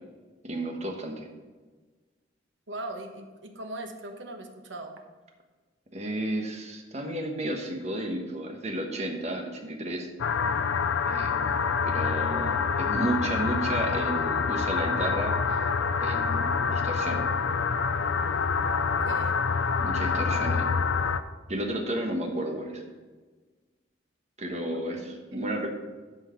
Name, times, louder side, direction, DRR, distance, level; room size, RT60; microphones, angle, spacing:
voice 1, 0.4-1.3 5.9-10.1 11.1-15.6 16.0-17.2 19.8-20.7 21.5-22.8 24.4-25.7, right 1 dB, 35° right, 3 dB, 1.2 m, -32 dB
voice 2, 2.7-5.0 19.0-19.3 24.7-25.6, right 2 dB, 80° right, 4 dB, 1.2 m, -40 dB
sound 1, 10.2-21.2, left 5 dB, 90° left, 0.5 m, -26 dB
11.5 x 4.5 x 5.8 m, 1.3 s
head